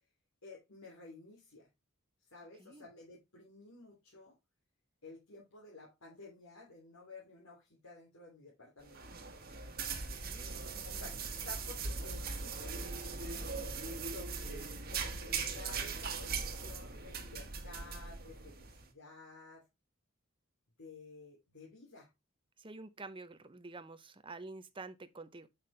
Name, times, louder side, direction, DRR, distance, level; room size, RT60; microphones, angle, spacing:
voice 1, 0.4-1.7 2.3-4.3 5.0-9.0 10.8-12.9 13.9-19.7 20.8-22.1, left 3 dB, 85° left, 3.0 m, -53 dB
sound 1, 8.8-18.8, right 4 dB, 45° right, 1.5 m, -40 dB
voice 2, 10.2-11.1 22.6-25.5, right 3 dB, 25° right, 0.7 m, -49 dB
8.5 x 5.9 x 3.3 m
head